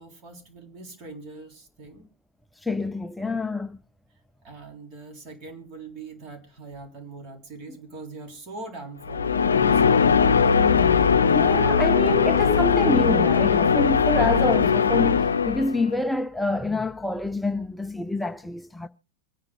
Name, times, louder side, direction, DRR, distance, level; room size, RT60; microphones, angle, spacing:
voice 1, 0.0-2.1 4.4-10.5, right 3 dB, 35° right, 3.6 m, -42 dB
voice 2, 2.6-3.8 11.3-18.9, left 2 dB, 5° left, 0.5 m, -27 dB
sound 1, 9.0-15.9, left 6 dB, 70° left, 0.6 m, -20 dB
25.5 x 9.7 x 2.3 m
figure-of-eight pair, 90°, 0 cm